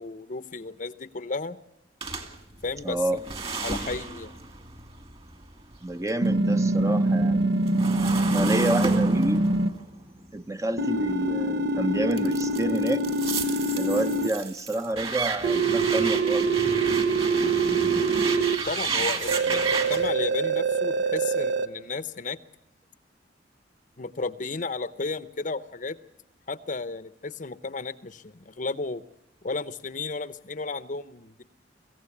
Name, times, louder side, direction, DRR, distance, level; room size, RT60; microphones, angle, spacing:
voice 1, 0.0-1.6 2.6-3.0 3.6-4.4 18.7-22.4 24.0-26.0 26.5-29.0 29.4-31.4, left 3 dB, 45° left, 14 dB, 0.8 m, -33 dB
sound 1, 2.0-6.3 6.6-11.5 12.1-20.1, right 4 dB, 35° right, 2.4 m, -33 dB
voice 2, 2.8-3.2 5.8-7.7 8.3-9.5 10.3-13.1 13.8-16.5 19.5-19.7, right 1 dB, 15° right, 9 dB, 0.7 m, -29 dB
sound 2, 6.2-9.7 10.8-14.3 15.4-18.6 19.3-21.7, right 3 dB, 75° right, 1.1 m, -24 dB
24.0 x 15.5 x 8.5 m, 0.90 s
head